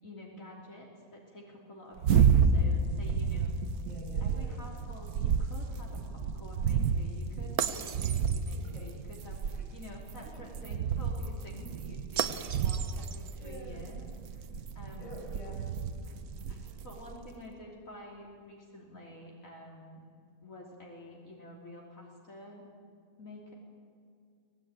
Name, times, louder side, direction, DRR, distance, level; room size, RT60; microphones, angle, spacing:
voice 1, 0.0-3.6 4.2-14.5 14.8-15.1 15.4-15.5 16.0-20.0 20.4-22.6 23.2-23.5, left 1 dB, 65° left, -2 dB, 3.6 m, -49 dB
voice 2, 2.0-2.7 3.8-4.7 8.5-9.0 9.5-9.7 10.3-10.8 13.3-13.9 14.9-15.6, right 1 dB, 20° left, -1 dB, 6.0 m, -47 dB
sound 1, 2.0-17.1, right 6 dB, 90° right, 1.4 m, -30 dB
24.5 x 18.0 x 9.0 m, 2.3 s
omnidirectional pair, 1.5 m